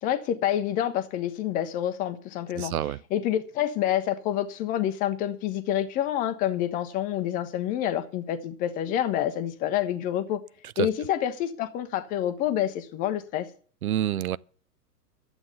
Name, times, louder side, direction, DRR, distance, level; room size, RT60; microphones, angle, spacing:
voice 1, 0.0-2.7 3.1-10.4 10.8-13.5, left 11 dB, 15° left, 0.6 m, -28 dB
voice 2, 2.5-3.0 10.8-10.9 13.8-14.4, right 11 dB, 60° right, 0.6 m, -27 dB
11.5 x 8.0 x 8.3 m
figure-of-eight pair, 110°, 49 cm